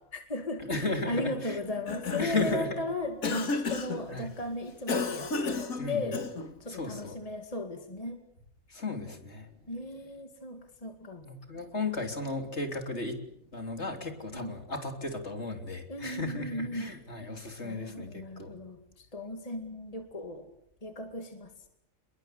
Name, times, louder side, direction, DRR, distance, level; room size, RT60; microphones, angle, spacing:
voice 1, 0.0-0.6 1.0-6.3 6.6-8.2 9.7-11.3 14.3-14.5 15.9-16.9 17.6-20.5 20.8-21.5, left 1 dB, 25° left, 6 dB, 2.4 m, -36 dB
voice 2, 0.7-1.6 2.2-2.8 4.1-4.3 5.8-6.1 6.7-7.2 8.7-9.5 11.2-13.2 13.5-18.6, left 3 dB, 55° left, 6 dB, 3.7 m, -35 dB
Cough, 1.7-2.7 3.2-4.0 4.9-6.5, left 4 dB, 85° left, 2.4 m, -32 dB
29.0 x 22.0 x 7.8 m, 0.72 s
omnidirectional pair, 1.4 m